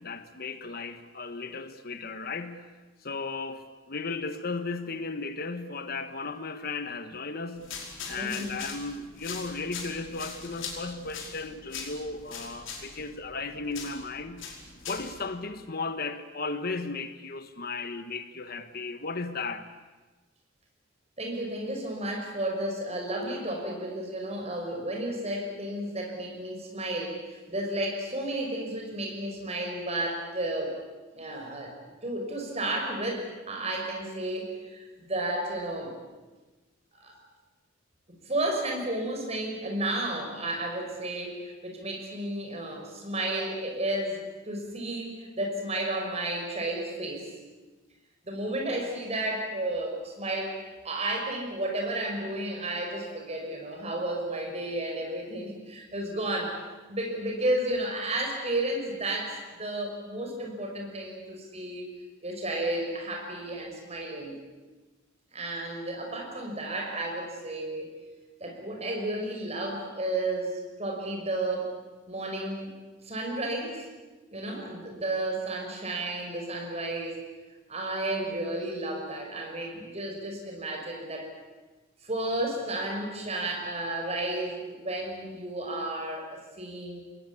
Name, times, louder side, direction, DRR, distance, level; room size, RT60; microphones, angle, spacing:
voice 1, 0.0-2.7 3.0-7.7 8.1-14.4 14.9-19.7, left 3 dB, 50° left, 1.3 m, -35 dB
sound 1, 7.6-15.2, left 5 dB, 70° left, 5.2 m, -42 dB
voice 2, 8.2-8.6 21.2-30.8 31.1-31.7 32.0-35.9 36.9-37.1 38.2-47.3 48.3-50.6 50.8-56.6 56.9-61.9 62.2-64.4 65.3-68.0 68.4-71.7 72.1-72.8 73.0-73.8 74.3-77.1 77.7-81.3 82.0-87.0, right 1 dB, 30° right, 6.2 m, -32 dB
27.0 x 21.0 x 8.6 m
head